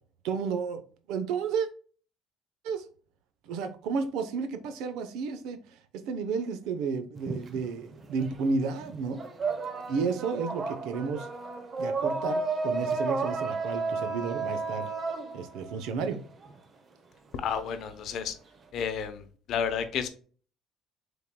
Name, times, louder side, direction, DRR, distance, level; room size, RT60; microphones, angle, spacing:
voice 1, 0.2-0.8 1.1-1.7 2.6-2.8 3.4-5.6 5.9-9.2 9.9-11.3 11.8-14.9 15.3-16.2, right 5 dB, 75° right, 0.7 m, -32 dB
sound 1, 7.2-8.4 8.7-16.5, right 4 dB, 35° right, 0.8 m, -32 dB
voice 2, 17.3-18.3 18.7-20.1, left 7 dB, 60° left, 0.7 m, -31 dB
5.6 x 3.8 x 2.2 m
cardioid pair, 110°, 0 cm